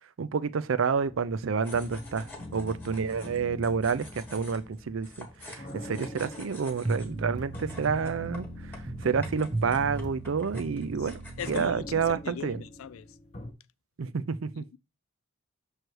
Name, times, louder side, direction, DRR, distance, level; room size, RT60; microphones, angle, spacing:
voice 1, 0.2-11.2 11.5-12.6 14.0-14.7, right 5 dB, 70° right, 0.5 m, -29 dB
sound 1, 1.1-13.5, left 1 dB, 30° left, 0.9 m, -45 dB
sound 2, 1.6-11.7, left 2 dB, 10° left, 1.1 m, -49 dB
sound 3, 6.8-12.2, right 2 dB, 20° right, 0.7 m, -37 dB
voice 2, 11.4-13.1 14.6-14.8, left 7 dB, 80° left, 0.4 m, -39 dB
6.4 x 3.2 x 4.5 m
head